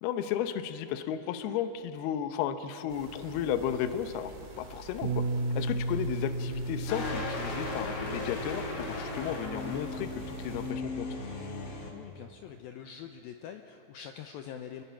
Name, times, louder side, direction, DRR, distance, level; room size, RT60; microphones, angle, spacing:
voice 1, 0.0-5.2 5.6-11.1, left 9 dB, 75° left, 9 dB, 2.6 m, -34 dB
sound 1, 2.9-10.7, right 3 dB, 45° right, 3.1 m, -47 dB
Bass guitar, 5.0-9.5 10.3-11.3, right 2 dB, 75° right, 1.8 m, -35 dB
sound 2, 6.9-11.9, left 3 dB, 40° left, 2.7 m, -36 dB
voice 2, 11.9-14.8, left 9 dB, 90° left, 5 dB, 2.1 m, -44 dB
29.5 x 21.0 x 5.8 m, 2.9 s
omnidirectional pair, 5.1 m